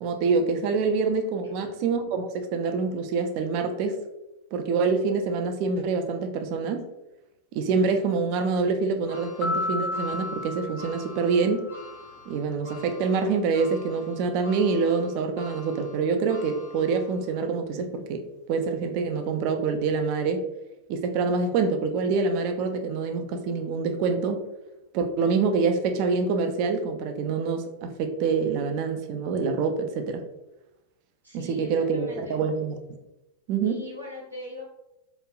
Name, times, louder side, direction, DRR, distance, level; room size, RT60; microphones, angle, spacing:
voice 1, 0.0-4.0 4.5-6.9 7.5-11.6 12.3-20.4 20.9-24.4 24.9-30.2 31.3-32.8 33.5-33.8, right 4 dB, 45° right, 6 dB, 0.3 m, -26 dB
sound 1, 9.1-17.4 17.9-18.0 19.2-19.3, left 3 dB, 65° left, 0.8 m, -47 dB
sound 2, 9.4-11.9, left 2 dB, 35° left, 0.5 m, -32 dB
voice 2, 31.2-32.3 33.6-34.6, left 1 dB, 90° right, -6 dB, 1.1 m, -40 dB
3.0 x 2.5 x 2.2 m, 0.95 s
figure-of-eight pair, 90°, 0 cm